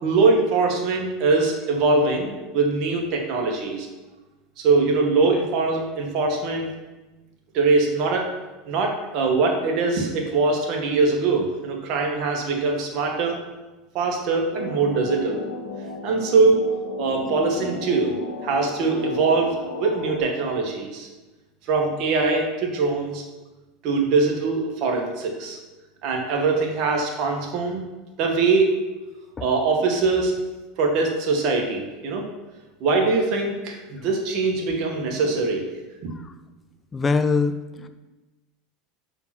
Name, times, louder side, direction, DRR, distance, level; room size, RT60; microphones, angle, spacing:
voice 1, 0.0-3.9 4.6-6.7 7.5-8.3 8.7-13.4 13.9-15.4 16.0-16.7 17.0-18.1 18.4-21.1 21.7-23.2 23.8-25.6 26.0-27.9 28.2-28.7 29.4-30.3 30.8-32.2 32.8-35.7 36.0-36.1, right 3 dB, 55° right, 1 dB, 2.0 m, -22 dB
sound 1, 14.5-20.2, left 3 dB, 80° left, 1.5 m, -34 dB
voice 2, 36.9-37.5 37.8-37.9, left 4 dB, 25° left, 10 dB, 0.4 m, -22 dB
6.0 x 5.6 x 6.2 m, 1.1 s
supercardioid pair, 110°, 0 cm